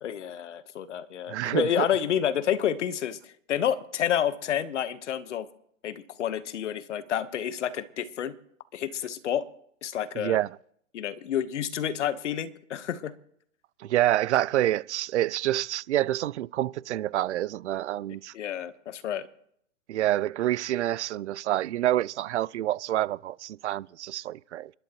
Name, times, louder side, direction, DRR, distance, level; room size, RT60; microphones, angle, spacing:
voice 1, 0.0-5.5 5.8-8.4 8.7-9.4 9.8-10.4 10.9-13.1 18.3-19.3, left 9 dB, 65° left, 1.2 m, -29 dB
voice 2, 1.3-1.9 10.2-10.5 13.8-18.3 19.9-24.7, right 13 dB, 65° right, 0.5 m, -27 dB
29.5 x 11.5 x 3.0 m
hypercardioid pair, 160°, 39 cm